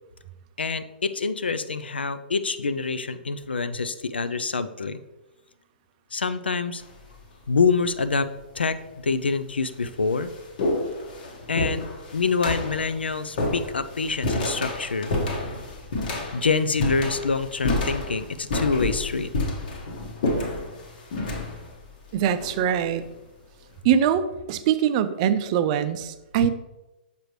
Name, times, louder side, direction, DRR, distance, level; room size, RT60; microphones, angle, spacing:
voice 1, 0.6-5.0 6.1-6.8 7.5-8.3 8.6-10.3 11.5-11.9 12.1-15.1 16.3-19.3, left 4 dB, 85° left, 12 dB, 0.4 m, -26 dB
sound 1, 6.8-7.2 8.2-8.3 9.1-9.2 9.6-23.1, left 2 dB, 60° left, 1.3 m, -30 dB
voice 2, 22.1-23.0 23.8-26.5, right 9 dB, 40° right, 12 dB, 0.4 m, -23 dB
6.7 x 4.9 x 3.1 m, 1.0 s
figure-of-eight pair, 120°, 5 cm